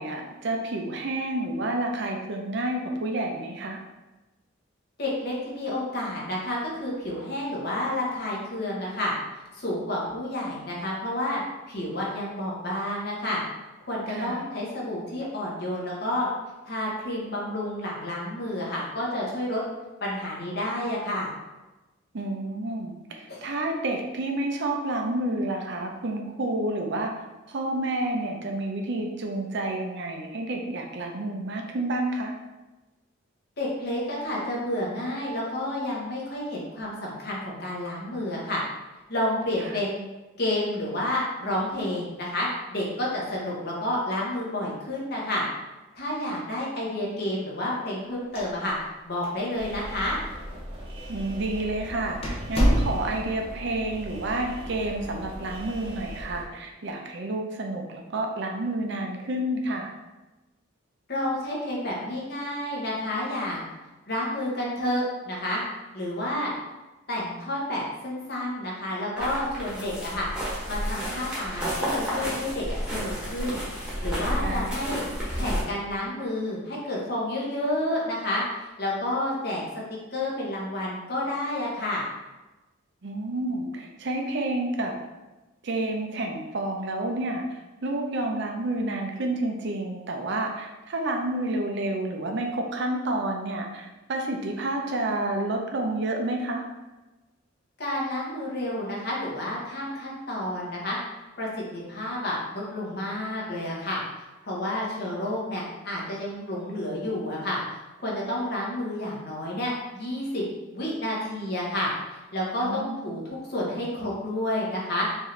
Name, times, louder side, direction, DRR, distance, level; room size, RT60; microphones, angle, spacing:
voice 1, 0.0-3.8 14.1-14.5 22.1-27.1 27.5-32.3 39.6-39.8 51.1-59.9 74.4-75.0 83.0-84.9 85.6-96.6 112.6-113.2, right 2 dB, 60° right, 2 dB, 0.6 m, -30 dB
voice 2, 5.0-9.1 9.5-11.4 11.7-13.4 13.8-16.3 16.6-19.6 20.0-21.3 23.3-23.4 33.6-38.6 39.1-40.0 40.4-45.4 45.9-48.7 49.0-50.2 61.1-63.6 64.1-65.6 65.9-66.5 67.1-73.6 74.0-75.0 75.3-79.6 80.1-82.1 97.8-101.0 101.4-104.0 104.4-110.4 110.7-115.1, left 1 dB, 55° left, -4 dB, 1.1 m, -30 dB
sound 1, 48.2-49.0 49.2-49.3 50.1-50.2 51.0-51.2 51.6-51.7 52.2-53.4, equal, 30° left, 0.7 m, -25 dB
sound 2, 49.5-56.4, equal, 25° right, 0.8 m, -40 dB
sound 3, 69.2-75.6, equal, 5° right, 1.1 m, -31 dB
4.7 x 2.7 x 3.2 m, 1.1 s
head